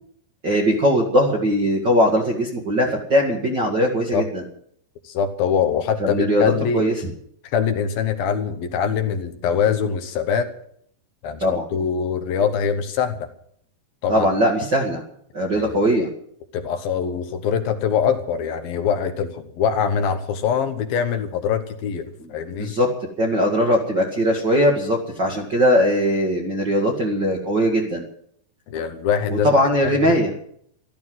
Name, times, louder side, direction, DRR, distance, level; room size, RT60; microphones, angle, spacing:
voice 1, 0.4-4.4 6.0-7.1 11.4-11.6 14.1-15.0 15.3-16.1 22.2-22.3 22.6-22.9 23.2-28.0 29.3-30.3, equal, 45° right, -1 dB, 1.5 m, -20 dB
voice 2, 5.0-6.8 7.5-10.5 11.2-11.4 11.7-13.3 14.0-14.3 15.6-15.7 16.5-22.7 28.7-29.5, left 7 dB, 70° left, 8 dB, 2.7 m, -23 dB
14.0 x 13.0 x 7.7 m, 0.66 s
omnidirectional pair, 4.8 m